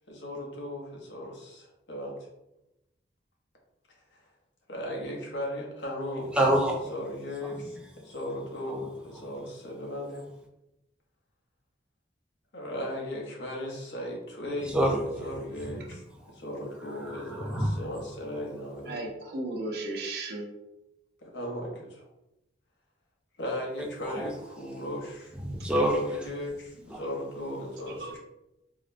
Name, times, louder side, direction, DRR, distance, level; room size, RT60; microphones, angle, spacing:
voice 1, 0.1-2.2 4.1-4.2 4.7-6.3 6.9-7.8 8.0-10.3 12.5-14.8 15.2-16.0 16.3-19.0 21.2-22.0 23.4-25.3 25.9-28.2, left 1 dB, 85° left, -1 dB, 0.8 m, -36 dB
voice 2, 6.3-6.8 8.7-8.8 14.6-15.2 17.0-17.8 24.1-24.3 25.4-26.0 26.9-27.0, right 1 dB, 5° right, 0 dB, 0.4 m, -26 dB
voice 3, 18.9-20.5 27.9-28.2, right 2 dB, 60° right, 2 dB, 0.6 m, -35 dB
3.7 x 2.1 x 2.5 m, 0.91 s
head